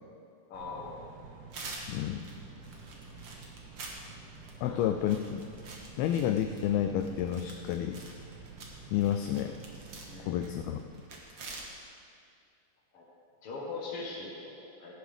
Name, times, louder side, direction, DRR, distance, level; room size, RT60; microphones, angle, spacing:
voice 1, 0.5-1.0 4.6-4.8 10.1-10.4 12.9-13.0 13.4-14.9, left 3 dB, 60° left, -5 dB, 1.5 m, -41 dB
sound 1, 0.5-10.7, right 4 dB, 70° right, 3.1 m, -50 dB
sound 2, 1.5-11.7, right 3 dB, 90° right, 1.2 m, -48 dB
voice 2, 1.9-2.3 4.6-5.4 6.0-8.0 8.9-9.5 10.2-10.8, left 10 dB, 80° left, 6 dB, 2.3 m, -30 dB
17.0 x 11.0 x 3.5 m, 2.3 s
omnidirectional pair, 4.7 m